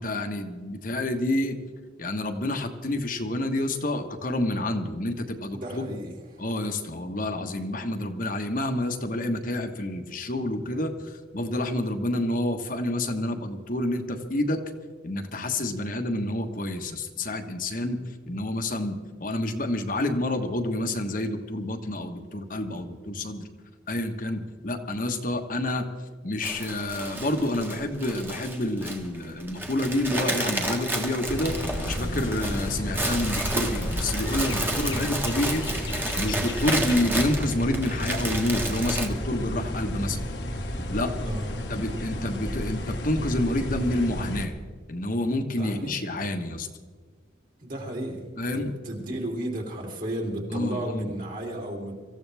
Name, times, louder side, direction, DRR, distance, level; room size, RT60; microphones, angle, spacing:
voice 1, 0.0-1.6 2.0-5.8 6.4-14.6 15.0-18.0 18.3-23.5 23.9-25.9 26.2-35.6 36.2-40.2 40.9-41.1 41.7-44.6 44.9-46.7 48.4-48.7 50.5-51.1, left 1 dB, 45° left, 5 dB, 1.4 m, -28 dB
voice 2, 5.5-6.4 7.2-7.3 34.7-35.0 41.2-41.5 45.5-46.0 47.6-51.9, right 1 dB, 45° right, 0 dB, 3.3 m, -34 dB
sound 1, 26.4-39.1, right 1 dB, 10° right, 1.5 m, -31 dB
sound 2, 31.3-44.5, left 1 dB, 65° left, 1.6 m, -32 dB
25.0 x 15.0 x 3.5 m, 1.5 s
head